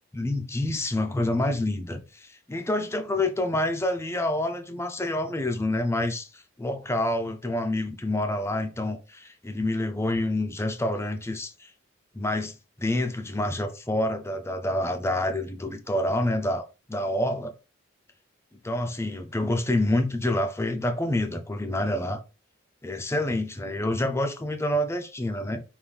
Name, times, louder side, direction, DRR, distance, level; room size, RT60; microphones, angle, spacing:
voice 1, 0.1-11.7 12.1-17.5 18.6-22.2 22.8-25.6, left 1 dB, 15° left, 0.6 m, -27 dB
5.5 x 2.6 x 3.4 m
head